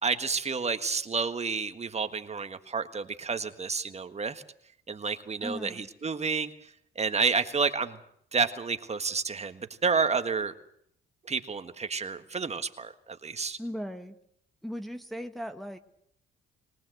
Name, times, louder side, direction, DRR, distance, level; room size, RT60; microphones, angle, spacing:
voice 1, 0.0-4.4 4.9-6.5 6.9-8.0 8.3-10.5 11.2-13.6, right 5 dB, 35° right, 8 dB, 1.6 m, -30 dB
voice 2, 5.4-5.9 13.6-14.2 14.6-15.8, equal, ahead, 5 dB, 1.3 m, -37 dB
22.5 x 18.0 x 7.8 m, 0.70 s
cardioid pair, 90°, 20 cm